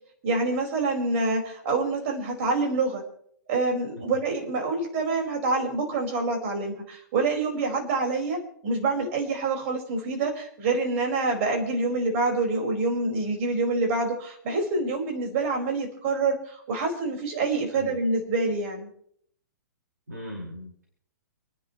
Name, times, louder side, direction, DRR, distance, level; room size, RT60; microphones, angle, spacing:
voice 1, 0.2-3.0 3.5-18.9, right 3 dB, 45° right, 2 dB, 4.9 m, -26 dB
voice 2, 20.1-20.8, equal, 80° right, -1 dB, 4.8 m, -39 dB
29.5 x 10.5 x 3.1 m, 0.66 s
figure-of-eight pair, 115°, 10 cm